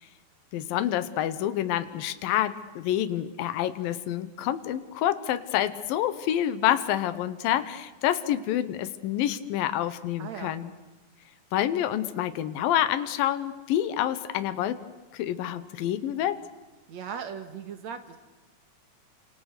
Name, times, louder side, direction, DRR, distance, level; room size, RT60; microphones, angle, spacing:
voice 1, 0.5-10.7 11.5-14.8 15.1-16.4, left 11 dB, 80° left, 12 dB, 2.8 m, -28 dB
voice 2, 10.2-10.6 16.9-18.2, right 7 dB, 55° right, 9 dB, 2.5 m, -38 dB
29.5 x 26.5 x 6.7 m, 1.2 s
omnidirectional pair, 4.1 m